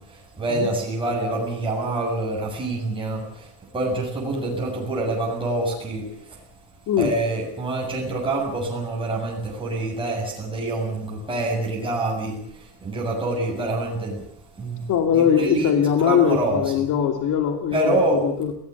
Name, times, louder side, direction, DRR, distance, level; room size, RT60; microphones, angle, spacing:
voice 1, 0.1-3.5 3.7-6.0 7.0-12.4 12.8-14.2 14.6-14.8 15.1-15.7 16.0-16.6 17.7-18.2, right 2 dB, 10° right, -2 dB, 7.5 m, -26 dB
voice 2, 14.9-18.5, left 8 dB, 50° left, 6 dB, 2.7 m, -21 dB
23.0 x 18.0 x 8.3 m, 0.70 s
cardioid pair, 155°, 41 cm